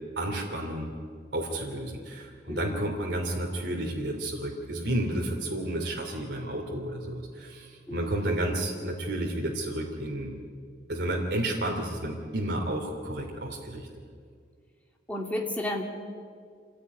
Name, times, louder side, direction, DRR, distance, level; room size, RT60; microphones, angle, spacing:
voice 1, 0.2-0.9 1.3-10.3 10.9-13.9, right 1 dB, 70° right, 0 dB, 3.1 m, -31 dB
voice 2, 2.5-2.9 7.9-8.3 15.1-15.8, left 1 dB, 10° left, 1 dB, 2.5 m, -33 dB
26.0 x 16.5 x 9.6 m, 2.1 s
head